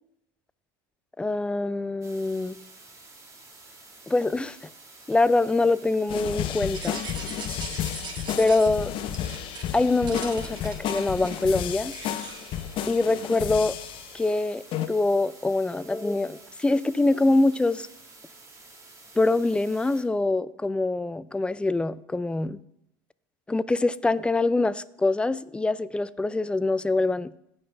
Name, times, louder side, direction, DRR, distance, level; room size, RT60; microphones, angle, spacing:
voice 1, 1.2-2.6 4.1-4.6 5.1-7.0 8.4-8.9 9.7-11.9 12.9-13.8 14.1-14.6 14.9-17.9 19.2-22.6 23.5-27.3, left 2 dB, 10° left, 0.4 m, -24 dB
sound 1, 2.0-20.0, right 3 dB, 30° right, 1.9 m, -50 dB
sound 2, 6.1-14.3 14.7-14.9, left 10 dB, 55° left, 0.7 m, -32 dB
sound 3, 6.7-8.7 9.1-9.7 10.1-13.4 13.8-14.4, right 5 dB, 45° right, 1.4 m, -41 dB
15.5 x 5.6 x 3.4 m
hypercardioid pair, 90°, 11 cm